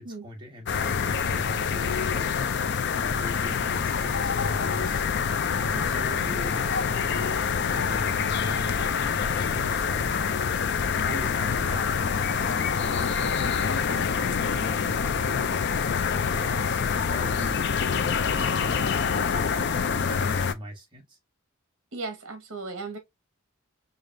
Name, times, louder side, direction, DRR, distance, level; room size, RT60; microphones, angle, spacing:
voice 1, 0.0-2.4 2.9-5.1 5.5-7.3 7.7-8.7 9.1-10.5 11.0-15.6 16.0-18.2 18.4-21.2, equal, 20° right, 1.4 m, -41 dB
sound 1, 0.7-20.5, left 6 dB, 50° left, 0.4 m, -26 dB
voice 2, 5.7-6.4 21.9-23.0, right 3 dB, 60° right, 1.1 m, -37 dB
4.9 x 2.7 x 2.5 m
head